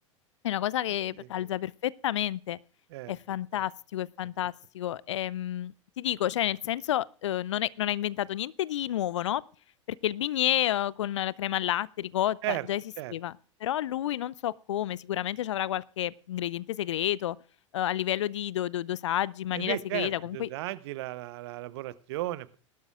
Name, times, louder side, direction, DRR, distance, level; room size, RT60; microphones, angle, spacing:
voice 1, 0.4-2.6 3.1-9.4 10.0-12.8 13.1-13.3 13.6-17.4 17.7-20.5, left 12 dB, 65° left, 0.5 m, -30 dB
voice 2, 19.5-22.6, right 16 dB, 55° right, 0.7 m, -35 dB
20.0 x 12.0 x 2.4 m
figure-of-eight pair, 90°, 16 cm